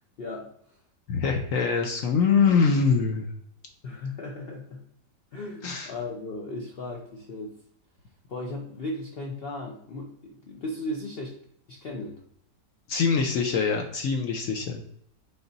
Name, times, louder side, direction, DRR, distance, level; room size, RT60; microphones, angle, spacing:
voice 1, 0.2-0.8 3.8-4.8 5.3-7.6 8.3-11.4 11.7-12.2, left 2 dB, 85° left, 0 dB, 0.5 m, -36 dB
voice 2, 1.1-3.3 5.6-5.9 12.9-14.8, left 5 dB, 65° left, 3 dB, 0.8 m, -24 dB
3.9 x 3.5 x 3.9 m, 0.67 s
omnidirectional pair, 1.8 m